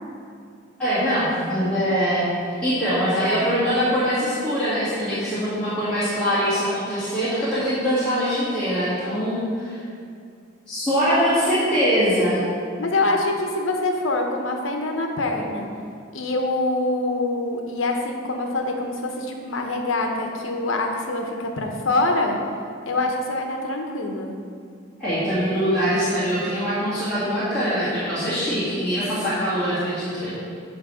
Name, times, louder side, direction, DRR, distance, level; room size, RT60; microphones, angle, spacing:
voice 1, 0.8-9.8 10.7-12.4 25.0-30.3, equal, 5° left, -16 dB, 2.1 m, -23 dB
voice 2, 12.8-15.7 16.1-22.4 22.9-24.3, left 2 dB, 80° left, 2 dB, 1.0 m, -25 dB
10.0 x 3.4 x 6.2 m, 2.4 s
head